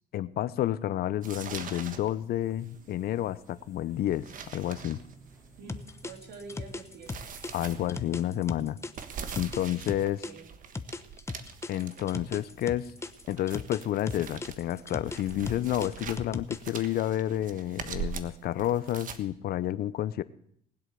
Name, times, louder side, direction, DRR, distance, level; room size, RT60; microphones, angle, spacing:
voice 1, 0.1-4.3 4.5-5.0 7.5-8.8 9.4-10.2 11.7-12.9 13.3-20.2, left 12 dB, 65° left, 17 dB, 0.7 m, -30 dB
sound 1, 1.2-19.2, right 7 dB, 50° right, 1.4 m, -43 dB
sound 2, 2.4-8.5, right 2 dB, 20° right, 3.6 m, -56 dB
voice 2, 5.6-7.1 7.5-7.8 9.9-10.5, right 4 dB, 75° right, 4 dB, 3.4 m, -47 dB
sound 3, 5.7-10.3 10.7-13.8 14.1-16.8, left 3 dB, 15° left, 0.9 m, -37 dB
19.0 x 8.1 x 6.8 m, 0.67 s
cardioid pair, 110°, 17 cm